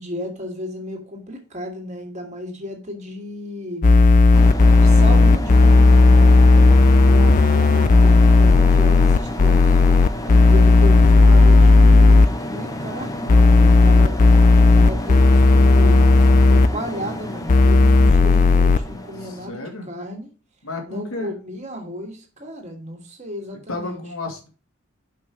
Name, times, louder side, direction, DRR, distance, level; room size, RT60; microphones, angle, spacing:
voice 1, 0.0-3.9 4.8-9.8 10.4-14.2 14.7-20.3 20.9-24.0, equal, 35° right, 2 dB, 2.3 m, -34 dB
sound 1, 3.8-12.3 13.3-16.7 17.5-18.8, left 3 dB, 40° left, 0.4 m, -12 dB
sound 2, 4.3-19.5, left 1 dB, 15° left, 1.0 m, -31 dB
voice 2, 19.2-19.9 20.6-21.3 23.7-24.5, left 2 dB, 80° left, 3 dB, 2.5 m, -32 dB
6.0 x 5.5 x 6.2 m, 0.35 s
head